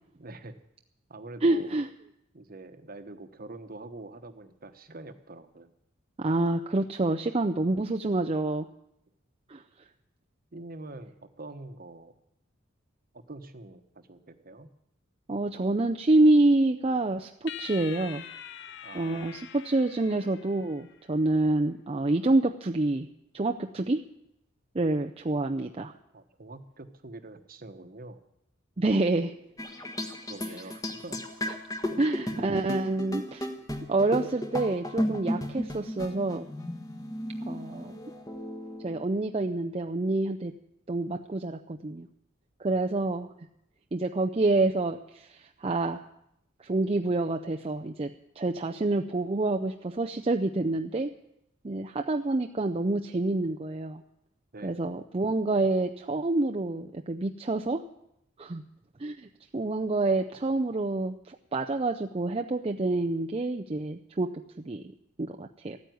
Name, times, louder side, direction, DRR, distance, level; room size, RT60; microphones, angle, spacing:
voice 1, 0.2-0.6 1.1-1.8 2.3-5.7 10.5-12.2 13.1-14.7 18.8-19.3 26.1-28.2 30.3-31.2 31.9-32.0 32.3-32.5 54.5-54.9, right 2 dB, 45° right, 9 dB, 1.2 m, -45 dB
voice 2, 1.4-1.9 6.2-8.7 9.5-9.6 15.3-18.2 18.9-23.1 23.3-24.0 24.7-25.9 28.8-29.3 32.0-33.5 33.9-36.5 37.5-38.0 38.8-40.5 40.9-42.1 42.6-43.3 43.9-46.0 46.6-48.1 48.4-51.1 51.6-54.0 54.6-57.8 58.4-58.6 59.0-59.3 59.5-64.8 65.2-65.8, right 2 dB, 30° right, 4 dB, 0.6 m, -27 dB
sound 1, 17.5-21.0, left 10 dB, 65° left, 0.7 m, -44 dB
sound 2, 29.6-39.0, equal, 20° left, 1.4 m, -34 dB
14.0 x 9.4 x 9.2 m, 0.78 s
head